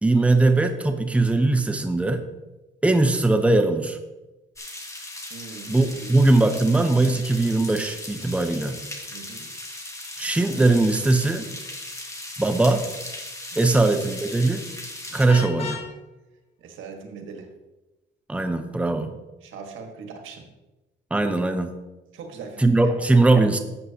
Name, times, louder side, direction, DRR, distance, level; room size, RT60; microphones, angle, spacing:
voice 1, 0.0-2.2 2.8-4.0 5.7-8.8 10.2-11.5 12.4-12.8 13.6-14.6 15.1-15.8 18.3-19.1 21.1-21.7 22.6-23.6, right 2 dB, 5° right, 7 dB, 0.7 m, -20 dB
sound 1, 4.6-15.3, left 1 dB, 15° left, 1.4 m, -38 dB
voice 2, 5.3-6.2 9.1-9.5 12.5-12.7 13.5-13.8 15.1-15.4 16.6-17.5 19.4-20.5 22.1-23.1, right 5 dB, 80° right, 3 dB, 1.5 m, -41 dB
Vehicle horn car horn honking, 15.3-15.9, left 4 dB, 30° left, 1.6 m, -32 dB
12.0 x 7.6 x 2.8 m, 1.1 s
cardioid pair, 90°, 20 cm